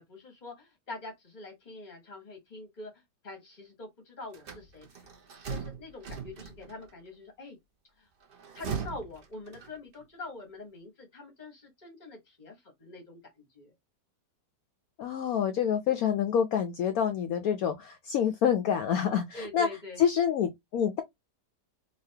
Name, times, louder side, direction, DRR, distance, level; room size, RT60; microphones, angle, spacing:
voice 1, 0.0-2.9 3.2-5.1 5.5-7.6 8.0-8.1 8.5-13.7 19.0-20.0, left 2 dB, 35° left, 0.9 m, -45 dB
sound 1, 4.3-6.9 8.2-10.0, right 6 dB, 50° right, 0.6 m, -39 dB
voice 2, 15.0-19.7 20.0-21.0, left 8 dB, 70° left, 0.9 m, -27 dB
4.0 x 2.8 x 2.7 m
omnidirectional pair, 1.9 m